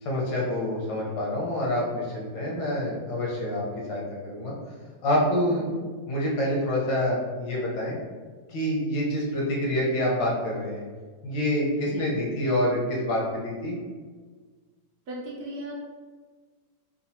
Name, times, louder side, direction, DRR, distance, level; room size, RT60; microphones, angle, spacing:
voice 1, 0.0-3.6 3.9-4.5 5.0-5.7 6.1-8.0 8.5-10.8 11.2-13.8, left 1 dB, 80° left, -4 dB, 1.6 m, -27 dB
voice 2, 5.4-5.8 11.8-12.1 15.1-15.7, right 1 dB, 65° right, -5 dB, 1.2 m, -38 dB
4.0 x 2.3 x 2.7 m, 1.4 s
omnidirectional pair, 2.0 m